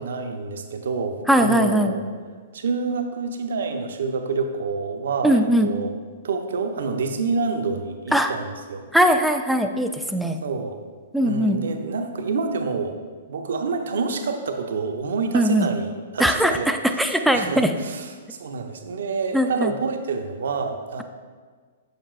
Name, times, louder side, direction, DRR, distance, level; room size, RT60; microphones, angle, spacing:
voice 1, 0.0-2.0 2.5-5.9 6.2-8.9 10.4-10.8 11.1-13.0 13.3-21.0, right 4 dB, 65° right, 6 dB, 0.6 m, -28 dB
voice 2, 1.3-1.9 5.2-5.7 8.1-8.3 8.9-10.4 11.1-11.6 15.3-15.7 16.2-17.7 19.3-19.7, equal, ahead, 6 dB, 0.4 m, -20 dB
7.1 x 6.5 x 2.4 m, 1.6 s
figure-of-eight pair, 110°, 0 cm